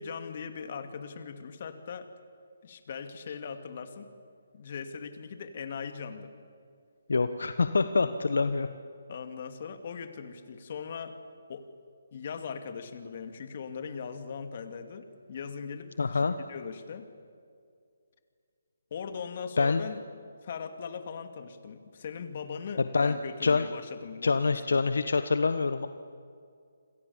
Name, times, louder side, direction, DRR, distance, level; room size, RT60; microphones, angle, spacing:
voice 1, 0.0-2.1 2.6-4.1 4.5-6.3 9.1-11.2 11.5-11.7 12.1-17.1 18.9-20.0 20.4-24.8, left 6 dB, 50° left, 8 dB, 2.7 m, -40 dB
voice 2, 7.1-8.7 16.0-16.3 19.6-19.8 22.9-23.7 24.2-25.9, left 4 dB, 75° left, 10 dB, 1.2 m, -26 dB
28.0 x 27.5 x 7.3 m, 2.2 s
figure-of-eight pair, 150°, 0 cm